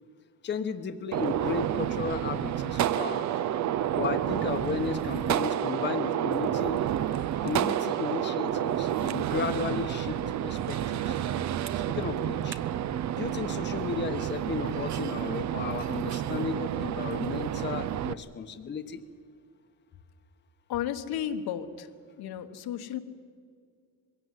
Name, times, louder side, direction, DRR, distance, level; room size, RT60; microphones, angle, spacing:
voice 1, 0.4-3.3 4.0-6.8 7.4-11.2 11.9-12.6 13.1-19.0, left 5 dB, 30° left, 7 dB, 1.0 m, -34 dB
Gunshot gunfire, 1.1-18.1, right 11 dB, 45° right, 0.6 m, -30 dB
voice 2, 20.7-21.9 22.2-23.0, left 10 dB, 70° left, 7 dB, 1.4 m, -33 dB
21.5 x 17.0 x 9.5 m, 2.2 s
cardioid pair, 145°, 39 cm